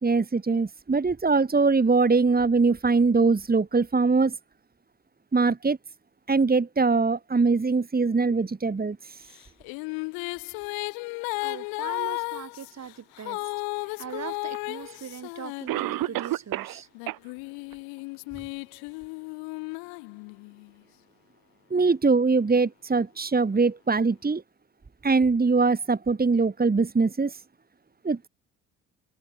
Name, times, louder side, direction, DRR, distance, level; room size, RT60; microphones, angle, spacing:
voice 1, 0.0-4.3 5.3-5.8 6.3-9.3 21.7-24.4 25.0-27.4 28.0-28.3, right 4 dB, 25° right, 3.2 m, -22 dB
sound 1, 9.3-16.3 17.0-20.7, left 32 dB, 75° left, 4.7 m, -34 dB
voice 2, 11.4-13.4 14.0-16.9, right 8 dB, 45° right, 4.9 m, -40 dB
Cough, 14.5-14.6 15.7-16.8 17.1-17.2 17.7-17.8 18.4-18.5, right 16 dB, 65° right, 3.2 m, -29 dB
open air
hypercardioid pair, 50°, 36 cm